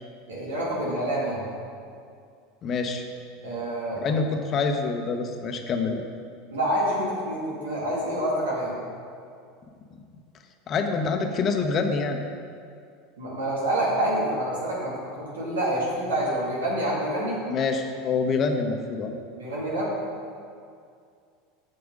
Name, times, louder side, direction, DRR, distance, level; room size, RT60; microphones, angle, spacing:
voice 1, 0.3-1.4 3.4-4.2 6.5-8.7 13.2-17.4 19.4-19.9, right 1 dB, 80° right, -5 dB, 2.2 m, -27 dB
voice 2, 2.6-3.0 4.0-6.0 10.7-12.2 17.5-19.1, left 4 dB, 40° left, 5 dB, 0.9 m, -26 dB
8.0 x 6.7 x 5.2 m, 2.3 s
hypercardioid pair, 80°, 0 cm